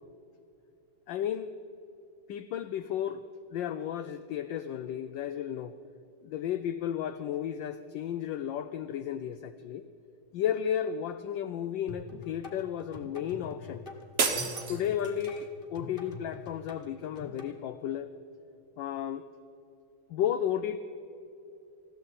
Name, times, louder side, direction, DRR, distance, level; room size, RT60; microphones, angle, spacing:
voice 1, 1.1-1.5 2.3-3.2 3.5-5.7 6.2-9.8 10.3-13.9 14.7-18.1 18.8-19.2 20.1-20.8, left 9 dB, 75° left, 10 dB, 1.1 m, -33 dB
sound 1, 11.9-17.5, left 2 dB, 30° left, 1.3 m, -45 dB
sound 2, 14.2-15.4, right 4 dB, 40° right, 0.9 m, -31 dB
20.5 x 15.0 x 4.1 m, 2.8 s
omnidirectional pair, 2.4 m